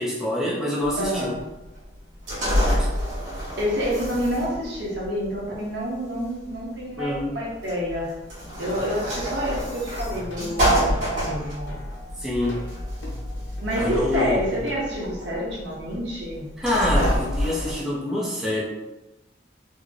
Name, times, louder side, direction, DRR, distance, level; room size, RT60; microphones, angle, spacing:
voice 1, 0.0-1.3 2.7-2.9 7.0-7.4 12.2-12.6 13.8-14.4 16.6-18.6, left 1 dB, ahead, -7 dB, 0.6 m, -26 dB
sound 1, 0.8-17.7, equal, 85° right, 1.5 m, -28 dB
voice 2, 1.0-1.4 3.6-8.1 8.6-11.7 13.6-16.5, equal, 70° right, -4 dB, 1.1 m, -28 dB
Plucked string instrument, 8.5-14.9, left 1 dB, 70° left, 0.9 m, -43 dB
3.3 x 2.1 x 3.7 m, 0.98 s
head